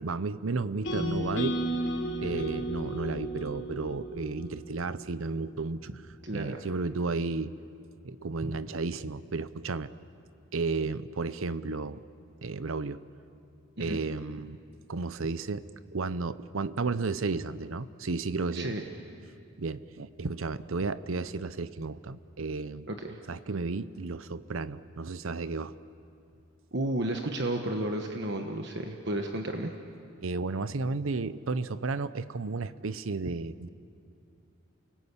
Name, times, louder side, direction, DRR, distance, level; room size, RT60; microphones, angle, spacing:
voice 1, 0.0-1.6 2.2-5.9 6.3-7.6 8.0-9.9 10.5-12.0 12.4-13.0 13.8-14.6 14.9-15.6 15.9-18.7 19.6-22.9 23.3-25.7 30.2-33.7, right 3 dB, 75° right, 15 dB, 0.7 m, -33 dB
sound 1, 0.8-5.0, right 1 dB, 60° left, 4.2 m, -33 dB
voice 2, 6.2-6.6 13.8-14.0 18.5-18.8 22.9-23.2 26.7-29.7, right 1 dB, 55° right, 3 dB, 1.2 m, -32 dB
29.0 x 19.5 x 8.4 m, 2.5 s
head